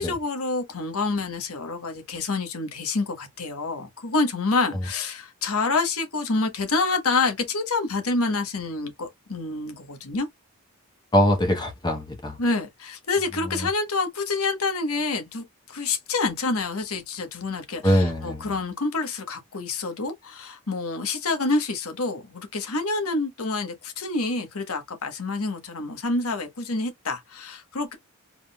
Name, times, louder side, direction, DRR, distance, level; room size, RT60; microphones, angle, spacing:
voice 1, 0.0-10.3 12.4-28.0, left 3 dB, 75° left, 1.2 m, -27 dB
voice 2, 11.1-12.4 13.4-13.7 17.8-18.5, equal, 20° left, 1.0 m, -23 dB
4.8 x 3.7 x 2.3 m
head